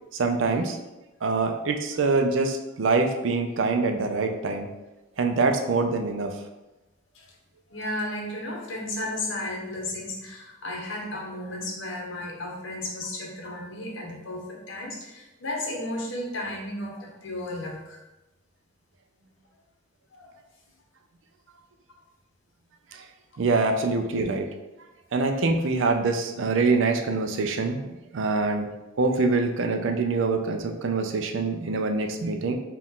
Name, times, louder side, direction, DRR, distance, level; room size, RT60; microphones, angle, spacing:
voice 1, 0.1-0.8 1.2-4.7 5.2-6.4 22.9-23.0 23.4-24.5 25.1-28.7 29.0-32.5, right 3 dB, 70° right, 5 dB, 0.5 m, -25 dB
voice 2, 7.7-18.0 20.1-20.3, left 1 dB, 70° left, -1 dB, 0.9 m, -34 dB
4.5 x 2.4 x 3.6 m, 1.0 s
head